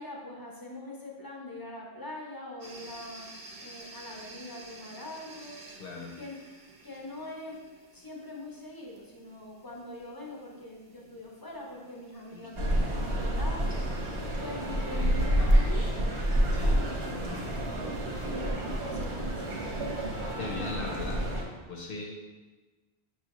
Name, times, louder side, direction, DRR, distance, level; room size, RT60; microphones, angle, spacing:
voice 1, 0.0-5.6 6.2-6.4 6.8-7.6 7.9-13.7 14.4-15.9 16.5-17.5 18.3-19.5 20.4-21.1, left 2 dB, 25° left, -2 dB, 0.5 m, -43 dB
sound 1, 2.6-20.1, right 3 dB, 50° right, 0.7 m, -48 dB
voice 2, 5.8-6.2 12.3-12.7 16.5-16.9 20.3-21.4 21.7-22.2, left 3 dB, 65° left, -1 dB, 0.7 m, -39 dB
sound 2, 12.6-21.4, right 1 dB, 90° right, 1.2 m, -28 dB
6.2 x 2.8 x 2.9 m, 1.3 s
omnidirectional pair, 1.1 m